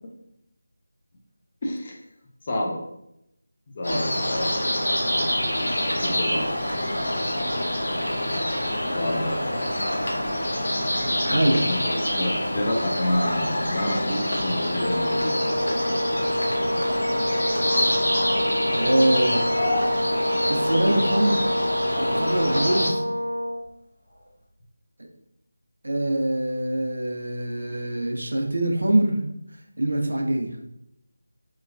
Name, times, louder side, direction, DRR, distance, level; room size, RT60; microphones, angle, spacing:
voice 1, 1.6-1.9 2.5-2.8 3.8-4.6 5.9-6.6 9.0-9.7 11.5-15.4, left 1 dB, 25° left, -1 dB, 0.4 m, -29 dB
sound 1, 3.8-22.9, left 1 dB, 85° left, 1.0 m, -26 dB
sound 2, 6.9-7.3 9.4-10.3 10.6-11.0 11.5-11.6 11.9-12.0 12.2-12.3 12.6-14.1 14.3-14.4 14.9-15.2 17.6-17.7 19.3-20.7 21.4-21.8 23.6-23.7 24.1-24.3, left 1 dB, 50° left, 0.8 m, -34 dB
voice 2, 11.2-11.6 18.7-19.5 20.5-21.4 22.0-23.0 25.8-29.2 29.8-30.5, right 1 dB, 70° right, 3 dB, 0.5 m, -24 dB
Brass instrument, 14.7-23.6, equal, 85° right, 0.9 m, -27 dB
3.0 x 2.2 x 2.5 m, 0.80 s
figure-of-eight pair, 175°, 0 cm